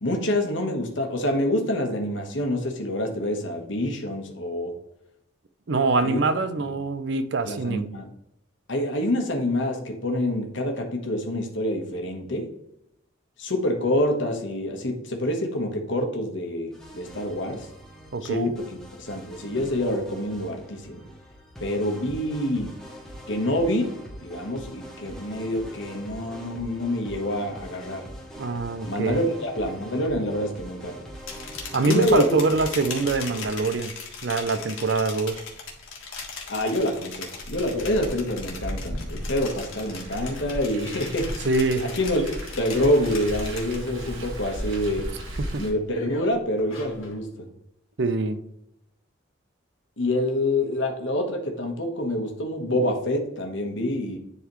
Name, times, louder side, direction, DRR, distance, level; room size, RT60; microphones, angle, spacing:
voice 1, 0.0-4.7 6.0-6.2 7.4-8.1 8.7-12.5 13.4-17.7 18.2-21.0 21.6-22.7 23.3-23.9 24.2-28.0 28.8-31.0 31.8-32.3 36.5-41.5 41.8-42.2 42.6-45.1 45.6-47.5 50.0-54.2, left 1 dB, 65° left, 1.2 m, -26 dB
voice 2, 5.7-7.9 18.1-18.4 28.4-29.2 31.7-33.9 34.2-35.4 41.4-41.9 45.4-45.6 48.0-48.4, right 3 dB, 60° right, 0.6 m, -24 dB
sound 1, 16.7-33.5, equal, 5° left, 1.1 m, -43 dB
sound 2, 31.1-44.1 44.5-44.9 45.3-47.2, left 4 dB, 85° left, 1.6 m, -39 dB
Car, 37.6-45.7, equal, 75° right, 1.9 m, -35 dB
10.0 x 4.0 x 3.1 m
head